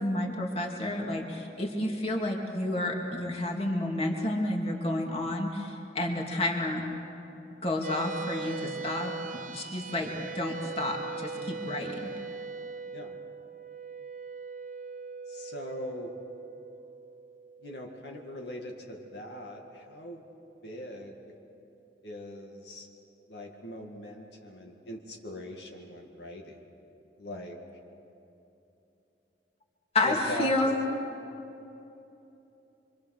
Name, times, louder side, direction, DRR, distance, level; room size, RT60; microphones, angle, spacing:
voice 1, 0.0-6.9 7.6-12.1 29.9-30.8, left 1 dB, 35° left, 0 dB, 2.7 m, -30 dB
sound 1, 7.8-20.5, right 5 dB, 50° right, 0.8 m, -41 dB
voice 2, 15.3-16.1 17.6-20.2 20.6-21.3 22.0-22.9 23.3-26.6 27.2-27.6 30.0-30.7, left 1 dB, 75° left, 1 dB, 2.1 m, -41 dB
26.0 x 25.5 x 6.6 m, 3.0 s
head